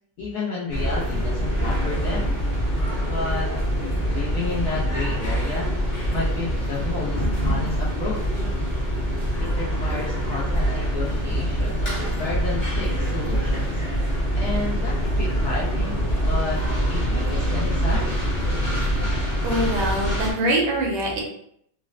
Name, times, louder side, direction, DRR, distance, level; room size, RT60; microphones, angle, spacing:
voice 1, 0.2-2.4 3.0-3.5 4.1-5.7 6.1-8.5 9.4-11.8 12.2-13.8 14.4-18.2, left 3 dB, 70° left, -7 dB, 0.9 m, -31 dB
sound 1, 0.7-20.3, equal, 35° left, 0.6 m, -25 dB
sound 2, 13.8-19.4, right 1 dB, 85° left, 0.6 m, -33 dB
voice 2, 19.4-21.2, right 1 dB, 75° right, -1 dB, 1.5 m, -23 dB
4.0 x 2.0 x 2.5 m, 0.70 s
omnidirectional pair, 2.3 m